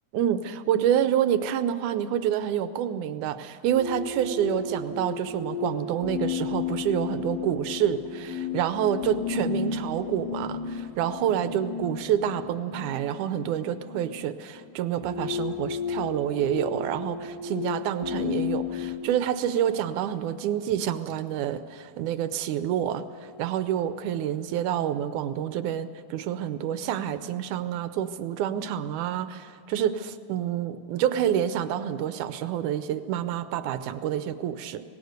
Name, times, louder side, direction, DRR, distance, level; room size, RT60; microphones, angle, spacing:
voice 1, 0.1-34.8, right 10 dB, 75° right, 11 dB, 2.1 m, -28 dB
sound 1, 3.7-19.0, left 6 dB, 75° left, 4.4 m, -33 dB
18.5 x 18.5 x 8.1 m, 2.2 s
omnidirectional pair, 3.9 m